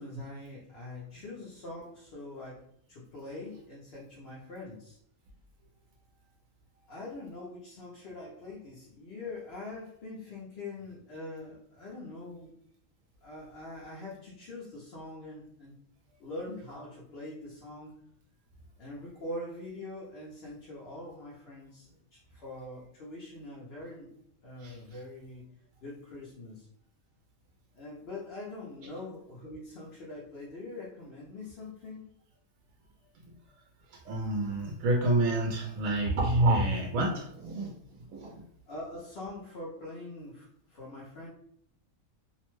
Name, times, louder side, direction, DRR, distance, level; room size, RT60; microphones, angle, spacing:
voice 1, 0.0-5.0 6.9-12.5 13.2-15.7 16.2-18.0 18.8-24.1 24.4-25.5 25.8-26.7 27.7-32.1 38.7-41.3, left 2 dB, 55° left, -6 dB, 0.8 m, -43 dB
voice 2, 33.9-38.4, right 1 dB, 85° right, -1 dB, 1.0 m, -28 dB
2.8 x 2.1 x 3.0 m, 0.68 s
omnidirectional pair, 1.4 m